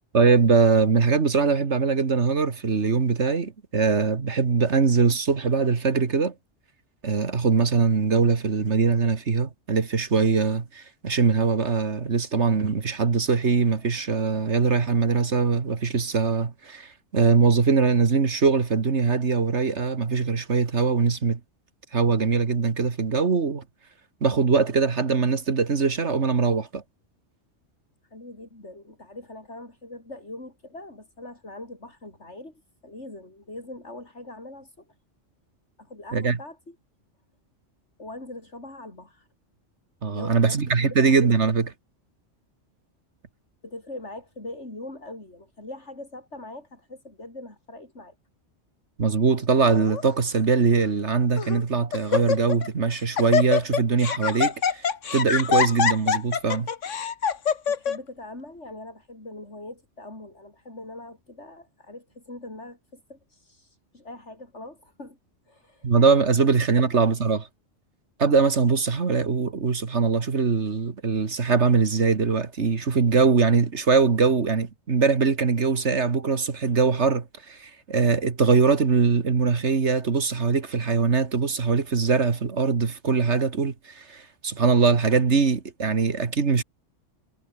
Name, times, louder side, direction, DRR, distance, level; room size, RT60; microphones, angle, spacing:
voice 1, 0.1-6.3 7.0-21.4 21.9-23.6 24.2-26.8 36.1-36.4 40.0-41.7 49.0-56.7 65.8-67.5 68.2-86.6, right 5 dB, 65° right, 2.1 m, -22 dB
voice 2, 28.1-34.9 35.8-36.8 38.0-39.3 40.0-40.9 43.6-48.1 57.7-65.2 65.5-65.9 66.4-67.0, left 2 dB, 65° left, 6.6 m, -42 dB
Laughter, 49.6-50.0 50.8-50.9 51.4-51.6 51.9-52.7 52.9-58.0, left 7 dB, 80° left, 1.7 m, -24 dB
omnidirectional pair, 1.3 m